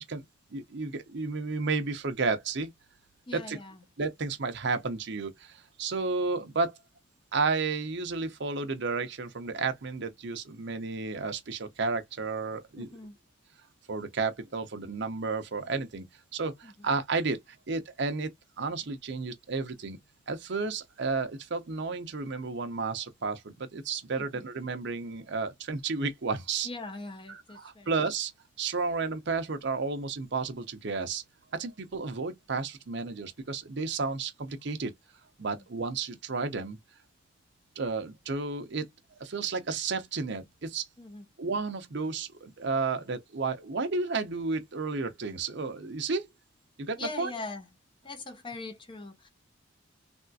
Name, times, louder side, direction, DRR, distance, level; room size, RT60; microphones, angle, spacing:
voice 1, 0.5-2.7 3.3-3.6 4.0-6.8 7.3-12.9 13.9-16.1 16.3-17.4 17.7-18.3 18.6-20.0 20.3-26.7 27.3-28.3 28.6-31.2 31.5-34.9 35.4-36.8 37.8-40.8 41.4-46.3 46.8-47.3, right 4 dB, 60° right, 0.7 m, -32 dB
voice 2, 3.3-3.8 12.8-13.2 16.6-16.7 24.3-24.5 26.6-27.9 35.4-35.6 41.0-41.3 47.0-47.7 48.0-49.3, left 3 dB, 25° left, 0.6 m, -41 dB
3.5 x 2.4 x 2.6 m
head